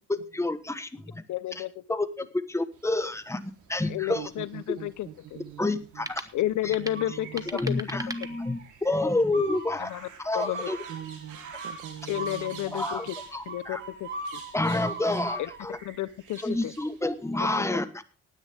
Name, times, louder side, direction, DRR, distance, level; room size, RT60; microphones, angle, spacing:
voice 1, 0.1-1.2 1.6-1.7 1.9-4.3 5.6-6.3 6.6-6.7 7.5-9.9 10.2-10.8 12.7-13.1 13.3-13.8 14.5-15.8 16.4-18.0, left 2 dB, 10° left, 10 dB, 1.2 m, -29 dB
voice 2, 1.3-1.8 3.9-5.4 6.3-7.9 9.8-10.1 10.3-10.7 12.1-13.1 13.5-14.4 15.4-15.5 15.8-16.7 17.5-17.7, left 14 dB, 80° left, 17 dB, 0.8 m, -32 dB
sound 1, 2.7-17.5, right 6 dB, 85° right, 3.3 m, -51 dB
sound 2, 3.6-8.9, right 2 dB, 10° right, 1.0 m, -43 dB
voice 3, 4.1-6.1 6.8-7.4 8.3-8.4 10.9-12.9, right 10 dB, 60° right, 14 dB, 1.1 m, -43 dB
sound 3, 6.9-7.7 8.1-8.6 9.3-15.6, right 2 dB, 40° right, 3.0 m, -40 dB
18.5 x 9.9 x 3.5 m, 0.32 s
cardioid pair, 120°, 30 cm